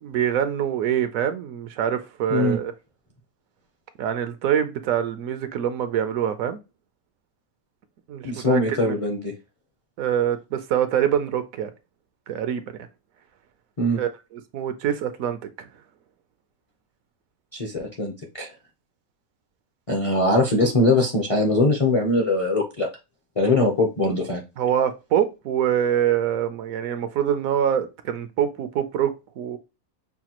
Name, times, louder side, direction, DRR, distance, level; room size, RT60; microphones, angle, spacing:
voice 1, 0.0-2.7 4.0-6.6 8.1-9.0 10.0-11.7 12.3-12.6 14.0-15.7 24.6-29.6, right 9 dB, 75° right, 1.0 m, -25 dB
voice 2, 8.2-9.3 13.8-14.0 17.5-18.5 19.9-22.9 23.4-24.4, left 2 dB, 35° left, 0.5 m, -21 dB
5.8 x 2.3 x 2.9 m
omnidirectional pair, 1.5 m